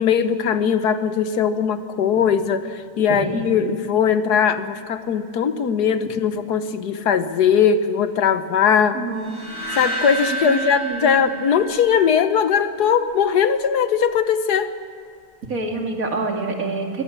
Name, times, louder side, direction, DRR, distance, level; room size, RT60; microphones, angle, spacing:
voice 1, 0.0-9.0 9.7-14.7, left 7 dB, 90° left, 11 dB, 1.6 m, -20 dB
voice 2, 3.1-3.5 8.9-9.3 10.4-11.2 15.5-17.0, right 3 dB, 60° right, 2 dB, 2.8 m, -27 dB
sound 1, 9.2-12.4, right 1 dB, 15° left, 7.5 m, -30 dB
22.5 x 17.0 x 7.4 m, 2.4 s
omnidirectional pair, 1.6 m